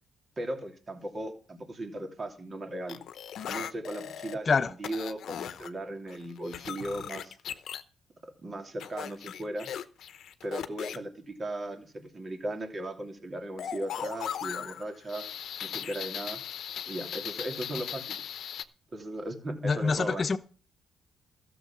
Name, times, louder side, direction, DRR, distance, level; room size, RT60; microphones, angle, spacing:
voice 1, 0.4-3.0 3.5-7.4 8.4-9.7 10.4-15.3 15.6-16.4 16.9-18.2 18.9-20.2, right 1 dB, 30° right, 2.9 m, -37 dB
sound 1, 2.9-4.3 4.8-5.7 6.1-7.8 8.8-11.0 13.6-18.6, left 9 dB, 70° left, 0.9 m, -38 dB
voice 2, 19.6-20.4, left 4 dB, 40° left, 1.1 m, -26 dB
13.5 x 7.0 x 7.0 m
cardioid pair, 90°, 0 cm